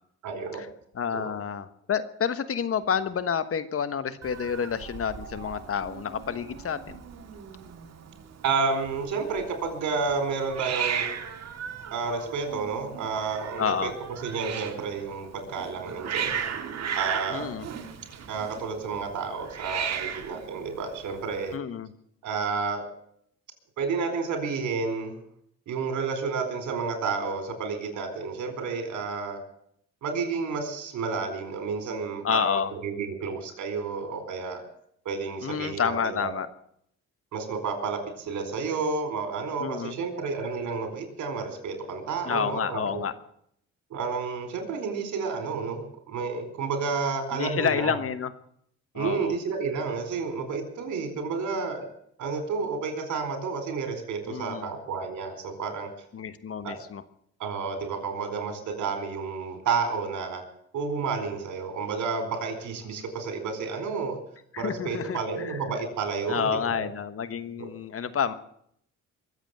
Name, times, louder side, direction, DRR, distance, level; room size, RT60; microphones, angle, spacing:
voice 1, 0.2-0.6 1.1-1.3 8.4-11.1 11.9-13.9 14.2-16.4 17.0-17.5 18.3-21.5 22.2-22.8 23.8-25.2 25.7-29.4 30.0-34.6 35.0-36.3 37.3-43.0 43.9-45.8 46.1-48.0 48.9-51.8 52.2-55.9 56.6-56.8 57.4-60.4 60.7-64.2 64.6-66.9, right 5 dB, 75° right, 6 dB, 4.5 m, -31 dB
voice 2, 0.9-7.0 13.6-13.9 17.3-17.7 21.5-21.9 32.2-32.7 35.4-36.5 39.6-39.9 42.2-43.1 47.4-48.3 48.9-49.3 54.3-54.7 56.1-57.0 64.5-65.6 66.3-68.3, left 7 dB, 50° left, 13 dB, 1.3 m, -29 dB
Hiss, 4.2-21.6, right 8 dB, 60° right, 2.1 m, -36 dB
22.5 x 8.1 x 7.8 m, 0.69 s
cardioid pair, 90°, 30 cm